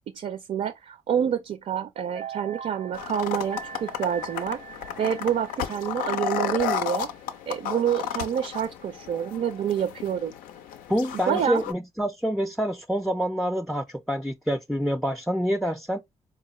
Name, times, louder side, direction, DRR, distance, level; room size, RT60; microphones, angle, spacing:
voice 1, 0.1-4.6 5.0-7.1 7.5-10.3 11.1-11.6, right 8 dB, 60° right, 0.5 m, -27 dB
sound 1, 2.1-7.4 7.7-7.9, right 7 dB, 85° right, 0.8 m, -43 dB
sound 2, 2.9-11.7, left 8 dB, 85° left, 0.4 m, -33 dB
voice 2, 10.9-16.0, equal, ahead, 0.4 m, -27 dB
4.0 x 2.3 x 2.9 m
supercardioid pair, 50°, 14 cm